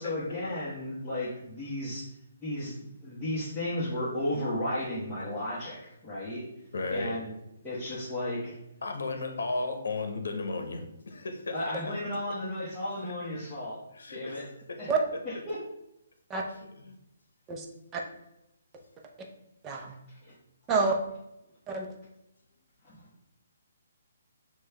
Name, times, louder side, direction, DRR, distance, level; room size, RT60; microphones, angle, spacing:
voice 1, 0.0-2.1 2.4-6.5 6.9-7.3 7.6-8.6 11.5-13.8 14.1-14.5 14.8-14.9 15.2-15.6 20.2-20.3 22.8-23.0, left 1 dB, 10° left, -12 dB, 1.1 m, -34 dB
voice 2, 6.7-7.1 8.8-12.1 13.9-14.8 16.8-16.9, left 3 dB, 80° left, 5 dB, 0.8 m, -34 dB
voice 3, 19.6-19.9 20.7-21.0 21.7-21.9, right 4 dB, 20° right, 1 dB, 0.6 m, -27 dB
6.1 x 2.3 x 3.3 m, 0.86 s
hypercardioid pair, 155°, 0 cm